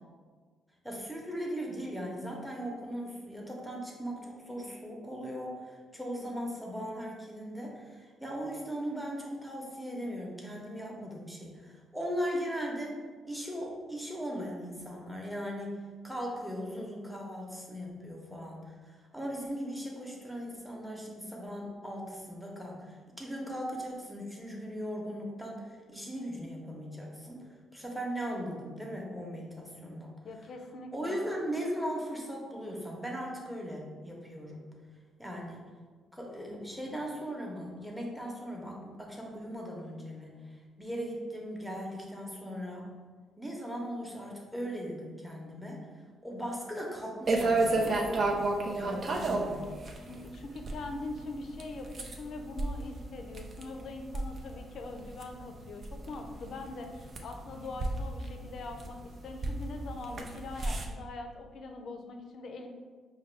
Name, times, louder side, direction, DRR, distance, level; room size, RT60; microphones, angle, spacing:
voice 1, 0.8-13.0 13.2-15.8 16.0-27.4 27.7-30.1 30.9-34.7 35.2-35.7 36.1-40.3 40.8-42.9 43.4-45.8 46.2-48.3 48.7-49.8, equal, ahead, -1 dB, 0.8 m, -38 dB
voice 2, 30.2-31.3 50.1-62.7, left 2 dB, 60° left, 4 dB, 0.4 m, -42 dB
sound 1, 47.3-60.8, right 2 dB, 45° right, 0.5 m, -33 dB
4.7 x 2.2 x 3.3 m, 1.5 s
cardioid pair, 90°, 0 cm